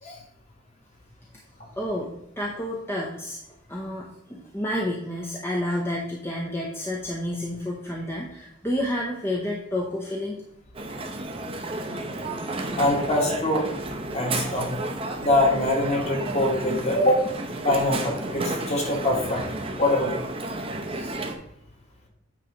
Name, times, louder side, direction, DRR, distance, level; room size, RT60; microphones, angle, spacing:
voice 1, 1.8-3.4 3.7-10.4, left 1 dB, 10° left, -3 dB, 0.8 m, -30 dB
Crowd, 10.7-21.3, right 2 dB, 25° right, 0.8 m, -32 dB
voice 2, 12.8-13.7 14.1-14.7 15.2-17.2 17.6-19.4 19.8-20.2, left 1 dB, 35° left, -2 dB, 1.9 m, -23 dB
8.9 x 3.2 x 5.0 m, 0.81 s
head